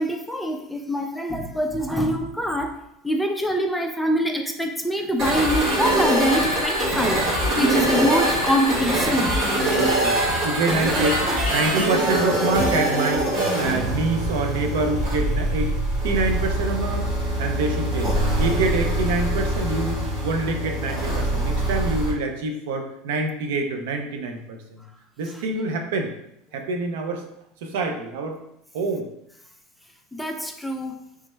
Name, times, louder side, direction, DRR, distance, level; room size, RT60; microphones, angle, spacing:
voice 1, 0.0-2.8 3.0-9.4 25.3-25.7 30.1-31.0, equal, ahead, 3 dB, 0.3 m, -24 dB
sound 1, 5.2-22.1, right 1 dB, 50° right, 1.5 m, -23 dB
voice 2, 7.6-8.1 9.6-15.7 16.0-18.1 18.4-24.6 25.2-26.1 26.5-27.2 27.6-28.4 28.7-29.1, right 3 dB, 80° right, 4 dB, 0.5 m, -26 dB
sound 2, 11.1-14.0, left 4 dB, 85° left, 0.3 m, -37 dB
3.3 x 2.2 x 3.0 m, 0.78 s
supercardioid pair, 140°, 0 cm